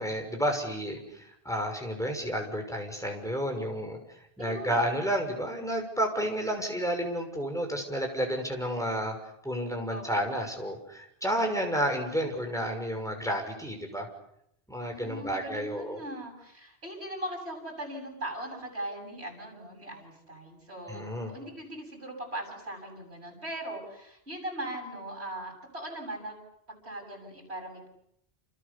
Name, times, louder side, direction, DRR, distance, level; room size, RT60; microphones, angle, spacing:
voice 1, 0.0-4.0 4.4-9.2 9.4-14.1 14.7-16.0 20.9-21.3, equal, 5° left, 3 dB, 6.1 m, -31 dB
voice 2, 4.4-4.8 9.9-10.1 14.8-26.4 26.7-27.9, right 1 dB, 75° right, 2 dB, 7.8 m, -39 dB
29.5 x 28.0 x 7.0 m, 0.76 s
omnidirectional pair, 1.1 m